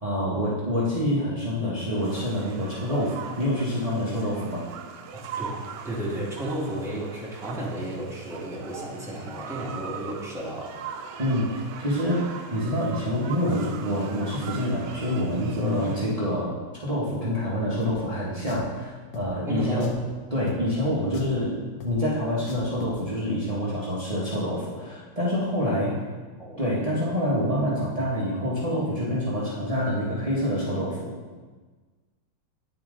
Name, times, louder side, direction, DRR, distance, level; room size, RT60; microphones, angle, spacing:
voice 1, 0.0-4.6 11.2-19.9 20.3-21.6 21.8-26.0 26.6-31.1, equal, 55° right, -8 dB, 0.4 m, -27 dB
sound 1, 2.0-16.0, right 7 dB, 75° right, 1.0 m, -41 dB
voice 2, 5.1-5.6 5.8-10.8 15.8-16.2 19.5-19.9 25.6-26.0 26.4-26.7, equal, ahead, -5 dB, 0.7 m, -33 dB
Drum, 17.8-17.9 18.5-18.7 19.1-19.3 19.8-20.1 20.5-20.6 21.1-21.4 21.8-21.9 22.5-23.0, left 7 dB, 75° left, 0.8 m, -38 dB
9.7 x 4.3 x 3.7 m, 1.4 s
omnidirectional pair, 2.4 m